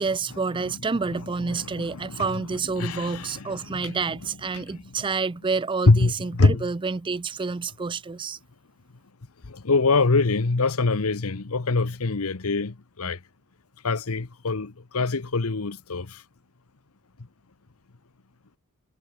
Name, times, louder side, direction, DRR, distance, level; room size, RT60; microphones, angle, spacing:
voice 1, 0.0-8.4, right 4 dB, 20° right, 0.4 m, -28 dB
voice 2, 0.7-4.2 4.5-5.0 5.9-6.7 9.4-13.2 13.8-16.2, left 3 dB, 80° left, 1.0 m, -25 dB
head